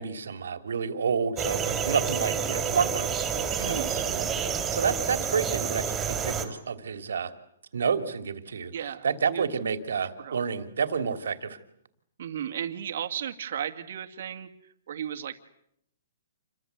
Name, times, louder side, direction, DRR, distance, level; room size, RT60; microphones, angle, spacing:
voice 1, 0.0-4.3 4.7-7.3 7.7-8.7 9.0-11.6, right 6 dB, 80° right, 10 dB, 3.0 m, -29 dB
sound 1, 1.3-6.4, right 7 dB, 15° right, 3.6 m, -29 dB
voice 2, 3.6-3.9 8.7-9.5 10.0-10.4 12.2-15.4, right 9 dB, 60° right, 6 dB, 2.3 m, -35 dB
28.5 x 24.0 x 8.3 m, 0.73 s
hypercardioid pair, 160°, 0 cm